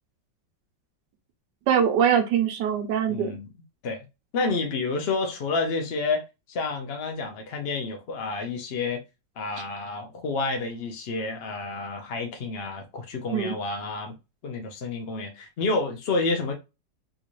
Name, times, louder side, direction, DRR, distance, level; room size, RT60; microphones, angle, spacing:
voice 1, 1.7-3.4 9.6-9.7 13.3-13.6, right 8 dB, 75° right, 1.3 m, -23 dB
voice 2, 3.1-3.5 3.8-4.1 4.3-9.0 9.4-14.1 14.4-16.5, left 3 dB, 70° left, 0.5 m, -29 dB
3.8 x 2.5 x 3.0 m
omnidirectional pair, 2.0 m